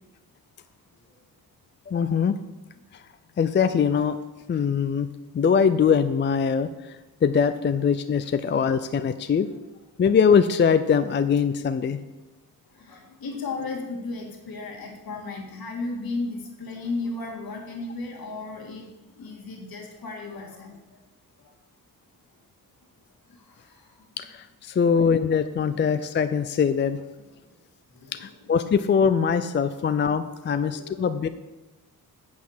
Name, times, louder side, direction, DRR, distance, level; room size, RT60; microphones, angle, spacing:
voice 1, 1.9-2.3 2.9-3.0 3.4-4.2 4.5-5.1 5.3-6.9 7.2-9.5 10.0-12.0 24.2-27.0 28.1-31.3, left 6 dB, 30° left, 11 dB, 0.4 m, -22 dB
voice 2, 12.7-18.9 19.2-20.8 21.4-21.5 23.3-24.0 24.7-25.0 27.5-27.6 27.9-28.2 30.5-31.1, left 3 dB, 65° left, 1 dB, 2.0 m, -35 dB
8.7 x 5.8 x 7.3 m, 1.1 s
wide cardioid pair, 120°, 38 cm